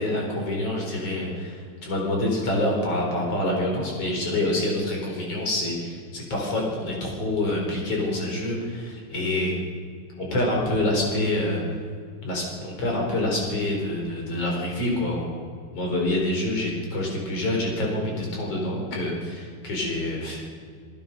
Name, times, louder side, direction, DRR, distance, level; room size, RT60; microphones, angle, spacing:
voice 1, 0.0-9.5 10.2-11.6 12.2-15.4 15.7-20.4, left 1 dB, 35° left, -1 dB, 5.1 m, -26 dB
26.5 x 18.0 x 5.4 m, 2.2 s
omnidirectional pair, 4.9 m